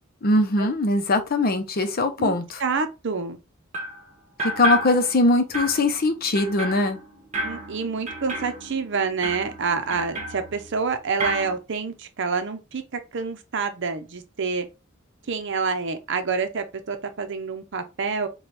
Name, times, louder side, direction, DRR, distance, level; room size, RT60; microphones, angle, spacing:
voice 1, 0.2-2.6 4.4-7.0, left 2 dB, 50° left, 0.7 m, -21 dB
voice 2, 2.6-3.4 7.4-12.8 13.1-14.7 15.3-18.3, right 5 dB, 60° right, 0.7 m, -27 dB
sound 1, 3.7-4.0 4.4-5.3 5.5-10.9 11.2-11.6, right 1 dB, 35° right, 1.1 m, -32 dB
4.3 x 2.3 x 3.3 m
head